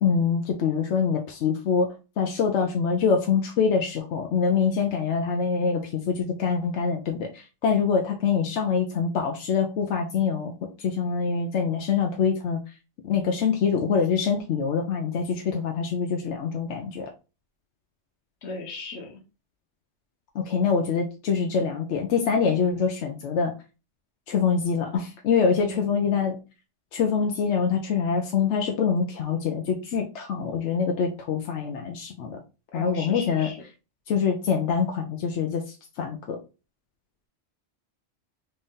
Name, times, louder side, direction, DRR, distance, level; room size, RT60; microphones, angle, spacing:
voice 1, 0.0-10.5 10.8-12.6 13.0-17.1 20.3-23.5 24.3-26.4 26.9-32.4 32.7-33.5 34.1-36.4, left 6 dB, 90° left, 3 dB, 0.9 m, -25 dB
voice 2, 18.4-19.2 25.6-25.8 32.7-33.6, left 2 dB, 75° left, 3 dB, 1.2 m, -37 dB
3.3 x 2.7 x 3.6 m, 0.30 s
omnidirectional pair, 1.2 m